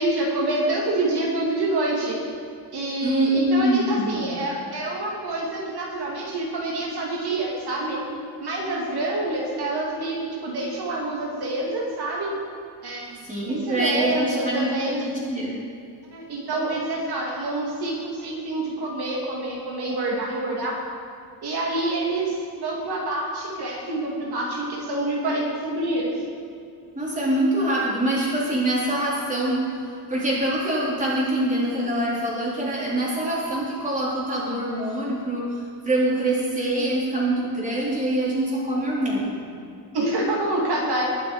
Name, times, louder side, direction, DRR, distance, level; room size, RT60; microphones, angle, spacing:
voice 1, 0.0-2.2 2.7-8.0 8.4-10.2 10.4-12.3 12.8-13.2 13.5-15.0 16.1-20.7 21.4-26.1 39.9-41.0, right 2 dB, 75° right, -3 dB, 2.5 m, -27 dB
voice 2, 3.0-4.3 13.2-15.5 27.0-39.4, right 1 dB, 20° right, -6 dB, 3.9 m, -24 dB
20.5 x 7.0 x 5.0 m, 2.5 s
wide cardioid pair, 140°, 39 cm